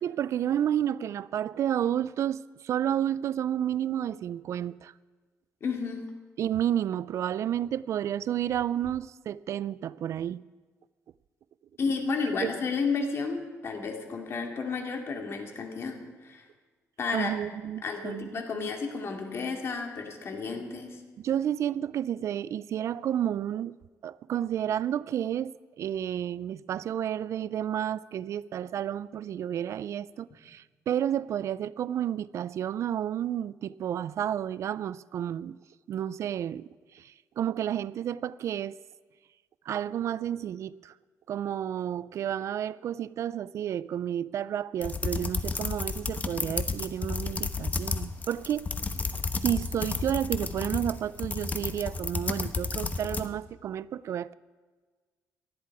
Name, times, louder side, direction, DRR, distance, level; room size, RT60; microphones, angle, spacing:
voice 1, 0.0-4.9 6.4-10.4 12.4-12.5 17.1-18.7 21.2-23.8 24.0-25.5 25.8-35.6 35.9-38.8 39.7-40.9 41.3-48.7 49.4-54.3, right 10 dB, 55° right, 0.4 m, -31 dB
voice 2, 5.6-6.1 11.8-16.4 17.0-17.3 17.8-21.0, left 4 dB, 45° left, 2.5 m, -32 dB
sound 1, 44.8-53.3, left 4 dB, 25° left, 1.0 m, -32 dB
19.0 x 13.0 x 4.8 m
cardioid pair, 120°, 6 cm